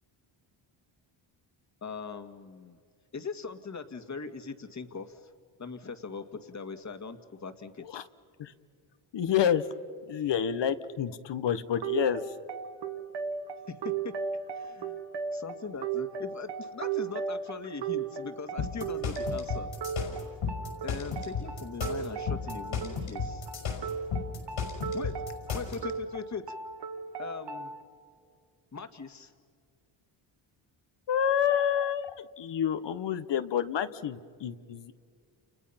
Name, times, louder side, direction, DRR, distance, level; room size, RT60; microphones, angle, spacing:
voice 1, 1.8-2.8 3.1-5.3 5.6-8.0 13.7-14.2 14.5-15.0 15.3-19.7 20.8-23.4 24.9-25.2 25.5-26.6 27.2-27.7 28.7-29.3, left 4 dB, 35° left, 8 dB, 2.0 m, -40 dB
voice 2, 9.1-9.6 10.1-12.2 31.1-34.9, left 9 dB, 60° left, 11 dB, 1.3 m, -28 dB
sound 1, 11.8-27.8, right 6 dB, 60° right, 1.7 m, -36 dB
sound 2, 18.6-25.8, left 6 dB, 80° left, 6.0 m, -34 dB
29.5 x 29.5 x 5.8 m, 2.1 s
cardioid pair, 85°, 47 cm